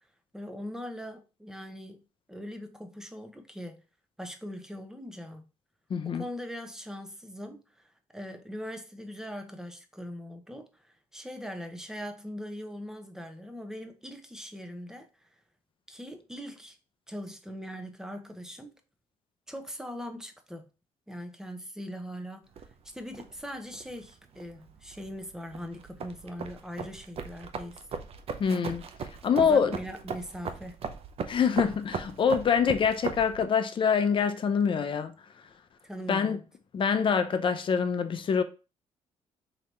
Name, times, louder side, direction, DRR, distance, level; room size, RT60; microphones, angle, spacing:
voice 1, 0.3-2.0 2.3-3.8 4.2-5.4 6.0-15.3 15.9-16.8 17.1-18.7 19.5-20.6 21.1-22.5 22.9-27.8 29.4-30.8 35.8-36.4, equal, 5° right, 0.9 m, -41 dB
voice 2, 5.9-6.2 28.4-28.8 29.2-29.7 31.3-35.1 36.1-36.4 36.7-38.4, left 6 dB, 45° left, 0.6 m, -25 dB
sound 1, 22.5-33.4, right 5 dB, 55° right, 0.6 m, -39 dB
4.0 x 2.9 x 3.3 m
supercardioid pair, 65°, 12 cm